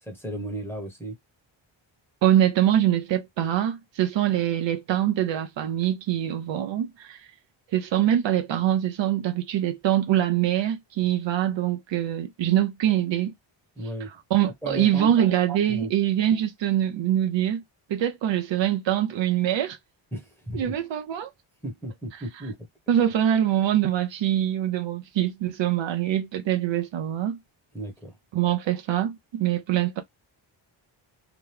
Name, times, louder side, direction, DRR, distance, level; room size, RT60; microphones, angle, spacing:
voice 1, 0.0-1.2 13.8-14.1 14.4-15.2 15.7-15.9 20.1-20.8 21.6-22.7 27.7-28.2, right 1 dB, 5° left, 1.1 m, -35 dB
voice 2, 2.2-7.2 7.7-13.3 14.3-17.6 17.9-19.8 20.5-21.3 22.9-27.4 28.3-30.0, right 11 dB, 65° right, 0.7 m, -24 dB
3.0 x 2.3 x 3.3 m
wide cardioid pair, 170°, 48 cm